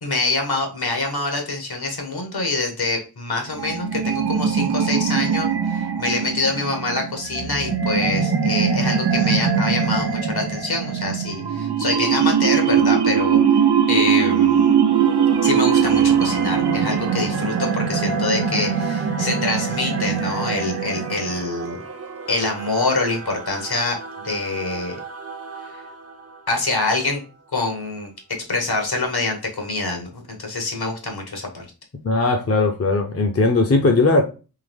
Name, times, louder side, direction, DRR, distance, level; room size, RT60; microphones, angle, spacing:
voice 1, 0.0-13.4 13.9-14.8 15.4-21.8 22.3-24.0 24.2-24.9 25.7-25.8 26.5-27.2 27.5-31.6, left 3 dB, 70° left, 2 dB, 1.4 m, -25 dB
sound 1, 3.5-21.5, right 7 dB, 90° right, 0.7 m, -21 dB
Singing / Musical instrument, 14.9-27.8, right 5 dB, 40° right, 0.6 m, -35 dB
voice 2, 32.0-34.2, left 3 dB, 40° left, 4 dB, 0.6 m, -18 dB
3.7 x 3.0 x 3.4 m, 0.32 s
wide cardioid pair, 80°, 38 cm